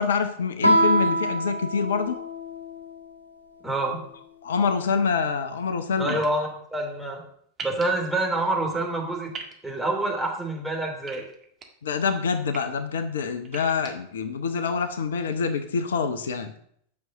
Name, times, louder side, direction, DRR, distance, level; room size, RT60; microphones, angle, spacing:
voice 1, 0.0-2.2 4.4-6.2 11.8-16.5, left 5 dB, 65° left, 10 dB, 0.8 m, -26 dB
Guitar, 0.6-3.1, right 1 dB, 80° left, 2.7 m, -24 dB
voice 2, 3.6-4.0 6.0-7.2 7.6-9.3 9.6-11.2, right 2 dB, 5° right, -1 dB, 3.2 m, -27 dB
sound 1, 6.1-6.3 7.6-7.8 9.3-9.5 11.1-11.6 12.3-12.6 13.4-13.9, right 5 dB, 25° right, 1.8 m, -38 dB
9.4 x 6.3 x 6.5 m, 0.67 s
figure-of-eight pair, 90°, 0 cm